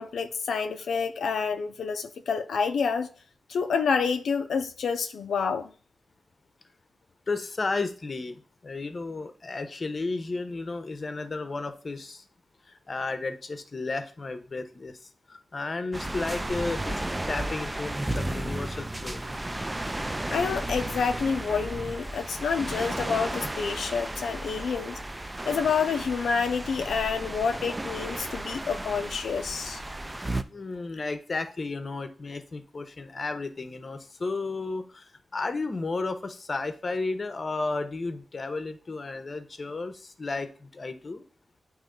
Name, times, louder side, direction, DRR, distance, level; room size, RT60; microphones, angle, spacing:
voice 1, 0.0-3.1 3.5-5.7 20.3-25.0 25.5-29.8, left 5 dB, 90° left, 0.4 m, -28 dB
voice 2, 7.3-12.2 12.7-19.2 30.5-41.2, left 3 dB, 40° left, 0.7 m, -33 dB
sound 1, 15.9-30.4, right 1 dB, 15° right, 0.4 m, -34 dB
8.9 x 3.1 x 3.7 m
wide cardioid pair, 95°, 0 cm